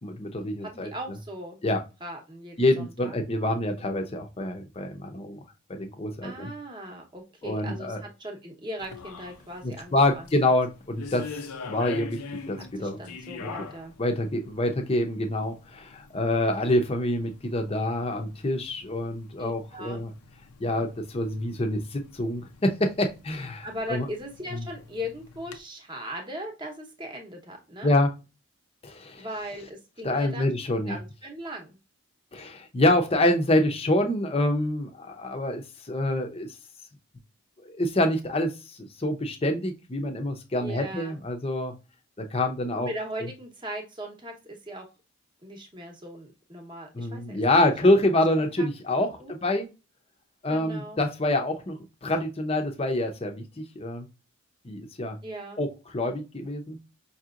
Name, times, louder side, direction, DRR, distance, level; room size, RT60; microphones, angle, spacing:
voice 1, 0.0-0.9 1.6-1.8 2.6-5.4 5.7-6.5 7.4-8.0 9.6-11.3 11.6-13.0 13.4-13.5 14.0-20.1 20.6-24.1 24.6-24.7 27.8-28.1 28.8-29.2 30.0-31.0 32.3-36.5 37.6-41.7 42.2-42.9 46.9-49.7 50.4-54.1 54.6-55.2 55.6-56.8, left 1 dB, 25° left, 4 dB, 0.6 m, -26 dB
voice 2, 0.6-1.6 2.0-3.2 6.2-10.3 12.6-13.9 19.4-20.1 23.6-27.9 29.2-30.5 30.9-31.8 40.6-41.2 42.8-44.9 45.4-47.9 48.4-48.7 49.2-49.4 50.5-51.0 55.2-55.6, equal, 20° right, 2 dB, 0.9 m, -39 dB
sound 1, 8.8-25.6, left 4 dB, 90° left, 0.6 m, -45 dB
5.4 x 2.8 x 2.4 m, 0.28 s
head